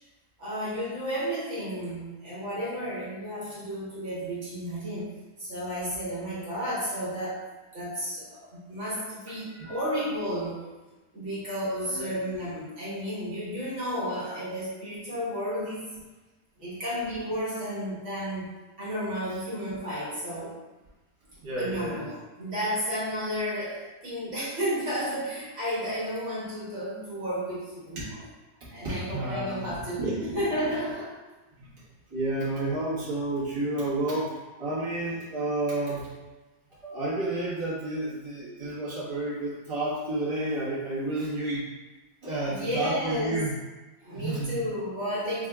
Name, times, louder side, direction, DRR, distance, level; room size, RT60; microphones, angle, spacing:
voice 1, 0.4-5.1 5.4-10.6 11.1-15.9 16.6-18.5 18.8-20.5 21.6-28.2 28.7-30.0 30.3-31.1 42.5-43.4 44.0-45.5, equal, 45° right, -8 dB, 1.4 m, -32 dB
voice 2, 9.5-9.8 11.9-12.1 21.4-22.0 28.8-29.7 30.0-30.4 31.6-31.8 32.1-34.3 34.6-36.1 36.8-41.6 42.2-43.5 44.0-44.5, right 2 dB, 20° right, -10 dB, 0.9 m, -30 dB
4.7 x 2.8 x 2.3 m, 1.2 s
omnidirectional pair, 1.8 m